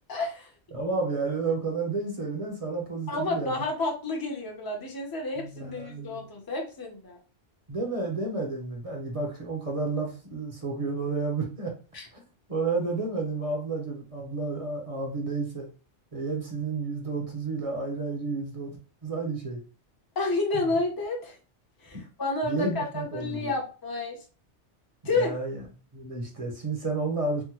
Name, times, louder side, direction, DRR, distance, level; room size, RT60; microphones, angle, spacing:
voice 1, 0.1-0.5 3.1-7.2 11.9-12.1 20.2-21.4 21.8-24.2 25.0-25.3, left 2 dB, 25° left, 0 dB, 0.6 m, -30 dB
voice 2, 0.7-3.6 5.4-6.3 7.7-11.7 12.1-12.2 12.5-15.7 16.1-19.6 20.5-20.7 21.9-22.0 22.4-23.5 25.1-25.6 25.9-27.4, right 3 dB, 35° right, 0 dB, 0.7 m, -31 dB
3.6 x 2.1 x 2.9 m, 0.36 s
omnidirectional pair, 1.2 m